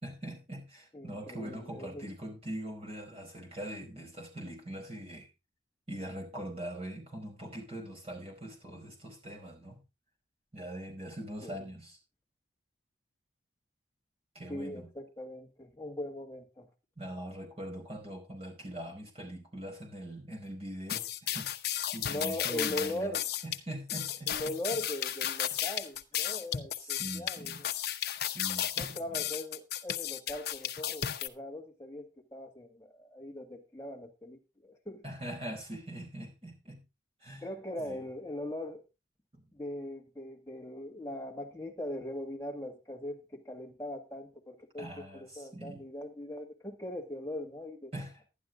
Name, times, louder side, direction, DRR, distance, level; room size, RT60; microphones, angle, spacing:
voice 1, 0.0-5.3 5.9-9.8 10.5-12.0 14.3-14.9 17.0-21.5 21.9-23.1 23.4-24.5 26.8-27.6 28.2-29.2 35.0-36.8 37.2-37.5 37.8-38.0 39.3-39.5 44.8-45.8 47.9-48.2, right 1 dB, 30° right, 5.0 m, -42 dB
voice 2, 0.9-2.1 11.4-11.7 14.5-16.7 22.1-23.2 24.3-27.7 28.8-35.0 37.4-38.8 39.5-47.9, left 1 dB, 15° left, 2.0 m, -40 dB
sound 1, 20.9-31.3, left 11 dB, 55° left, 0.9 m, -34 dB
11.5 x 11.5 x 3.7 m
head